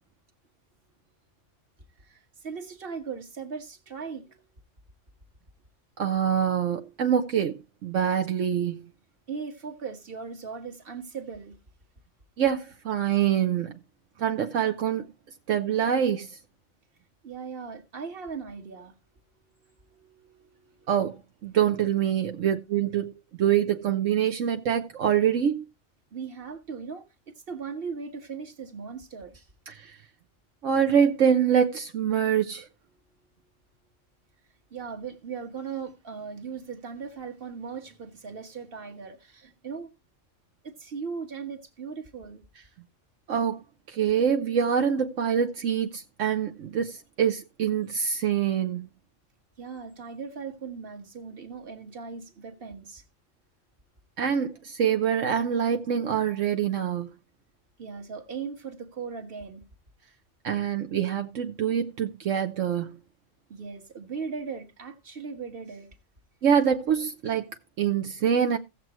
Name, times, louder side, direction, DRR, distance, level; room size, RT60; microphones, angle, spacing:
voice 1, 2.0-4.4 9.3-11.6 17.2-18.9 19.5-20.9 26.1-27.1 27.5-29.5 34.7-39.9 40.6-42.4 49.6-53.0 57.8-59.6 63.5-65.9, right 5 dB, 45° right, 1.7 m, -38 dB
voice 2, 6.0-8.8 12.4-13.8 14.2-15.1 15.5-16.4 20.9-21.2 21.4-23.1 23.4-25.6 29.7-30.0 30.6-32.7 43.3-43.6 43.9-48.9 54.2-57.1 60.4-63.0 66.4-68.6, right 8 dB, 75° right, 1.2 m, -25 dB
16.0 x 7.6 x 3.1 m
omnidirectional pair, 1.3 m